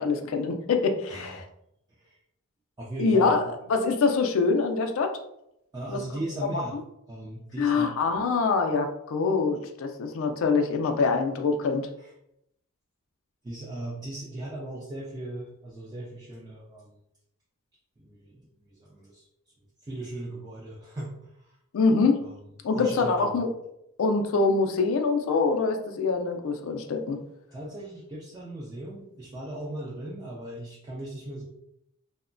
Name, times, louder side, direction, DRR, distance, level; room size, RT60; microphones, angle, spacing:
voice 1, 0.0-1.4 3.0-3.4 3.7-5.1 5.9-6.0 6.7-6.8 7.6-11.9 21.7-22.2 22.6-23.5 24.0-27.2, left 4 dB, 65° left, 4 dB, 0.4 m, -24 dB
voice 2, 1.1-1.4 2.0-2.2 2.8-3.4 5.7-6.8 7.1-7.9 12.0-12.1 13.4-17.0 18.0-19.3 19.8-21.6 22.2-22.4 22.8-23.4 27.5-31.4, right 1 dB, 20° right, -5 dB, 0.3 m, -38 dB
2.8 x 2.1 x 2.5 m, 0.80 s
head